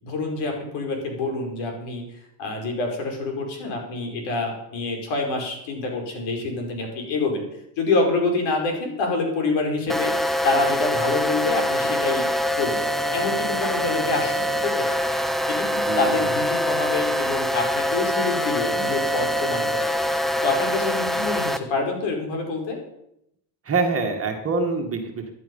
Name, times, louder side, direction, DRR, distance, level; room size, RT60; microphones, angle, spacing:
voice 1, 0.0-2.0 2.4-7.4 7.8-12.3 12.5-12.8 13.1-15.0 15.5-19.9 20.4-22.8, left 3 dB, 65° left, 2 dB, 5.3 m, -26 dB
sound 1, 9.9-21.6, left 1 dB, ahead, 0.7 m, -24 dB
voice 2, 15.8-16.4 23.7-25.3, right 4 dB, 25° right, 4 dB, 2.2 m, -25 dB
15.5 x 11.0 x 5.6 m, 0.77 s
supercardioid pair, 120°, 50 cm